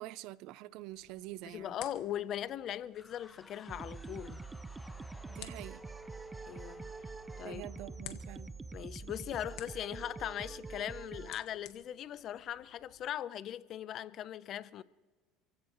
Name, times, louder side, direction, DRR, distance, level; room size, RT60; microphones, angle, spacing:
voice 1, 0.0-1.9 5.3-5.8 7.4-8.5, right 16 dB, 65° right, 0.5 m, -46 dB
sound 1, 0.9-13.1, left 12 dB, 75° left, 1.6 m, -56 dB
voice 2, 1.5-4.4 6.5-7.1 7.4-7.7 8.7-14.8, left 11 dB, 50° left, 0.7 m, -40 dB
sound 2, 2.9-8.7, left 2 dB, 10° left, 1.1 m, -58 dB
sound 3, 3.7-11.4, right 4 dB, 15° right, 0.6 m, -45 dB
29.5 x 16.0 x 3.1 m
supercardioid pair, 110°, 0 cm